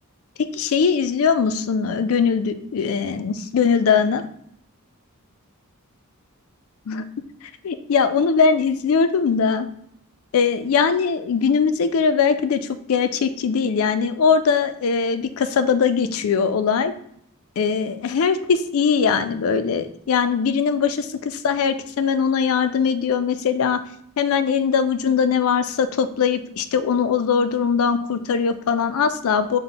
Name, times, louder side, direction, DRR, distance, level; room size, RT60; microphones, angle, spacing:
voice 1, 0.5-4.2 6.9-7.1 7.6-9.7 10.3-16.9 17.6-23.8 24.2-29.6, left 6 dB, 70° left, 11 dB, 0.4 m, -21 dB
5.4 x 2.1 x 3.8 m, 0.70 s
head